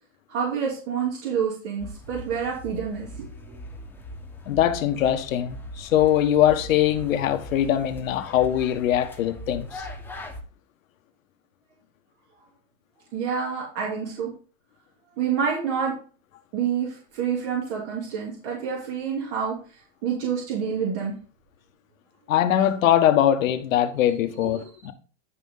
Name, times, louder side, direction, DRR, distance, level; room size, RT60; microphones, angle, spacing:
voice 1, 0.3-3.6 13.1-14.3 15.2-15.9 16.5-21.1 24.4-24.7, right 7 dB, 60° right, 3.0 m, -28 dB
sound 1, 1.8-10.4, left 1 dB, 5° left, 1.3 m, -40 dB
voice 2, 4.5-9.9 22.3-24.9, left 11 dB, 90° left, 1.4 m, -22 dB
11.5 x 5.1 x 3.8 m
supercardioid pair, 135°, 39 cm